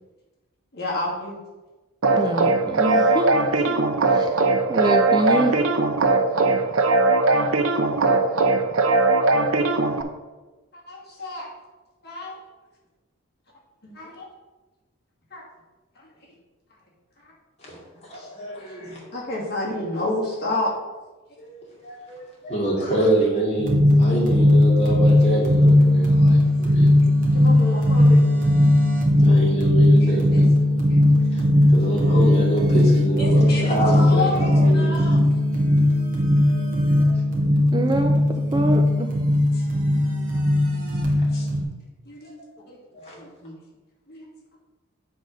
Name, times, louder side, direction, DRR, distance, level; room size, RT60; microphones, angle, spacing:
voice 1, 0.7-1.4 6.5-6.7 7.3-7.6 10.7-11.5 12.0-12.4 13.8-14.3 15.3-15.4 16.0-16.1 18.1-18.3 18.8-20.7 22.8-23.1 24.9-25.1 27.3-28.2 30.0-30.5 30.9-31.2 33.2-35.2 39.5-39.6 41.3-41.5 42.1-42.4 42.7-42.8 43.1-43.6 44.1-44.3, left 2 dB, 50° left, -4 dB, 2.5 m, -31 dB
sound 1, 2.0-10.0, right 3 dB, 85° right, 0.7 m, -20 dB
voice 2, 2.1-3.7 4.1-4.3 4.7-5.6 37.7-38.1 38.5-39.1, right 1 dB, 20° right, 4 dB, 0.4 m, -25 dB
voice 3, 18.1-19.0 21.4-27.0 29.2-30.5 31.3-31.4 31.7-34.9 36.9-37.1 42.9-43.2, right 1 dB, 30° left, -5 dB, 2.6 m, -26 dB
sound 2, 23.6-41.6, left 1 dB, 40° right, 1.5 m, -18 dB
8.5 x 3.9 x 6.2 m, 1.2 s
head